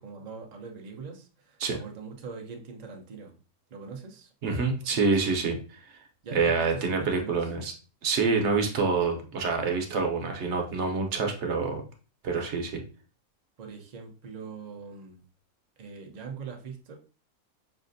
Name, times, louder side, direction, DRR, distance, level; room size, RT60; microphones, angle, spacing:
voice 1, 0.0-3.3 3.7-4.3 4.8-5.2 6.2-7.5 13.6-15.2 15.8-16.9, right 5 dB, 80° right, 2 dB, 0.3 m, -42 dB
voice 2, 4.4-5.6 6.3-7.7 8.0-11.8 12.2-12.8, right 4 dB, 60° right, 3 dB, 0.9 m, -26 dB
5.7 x 2.5 x 2.5 m, 0.36 s
omnidirectional pair, 1.6 m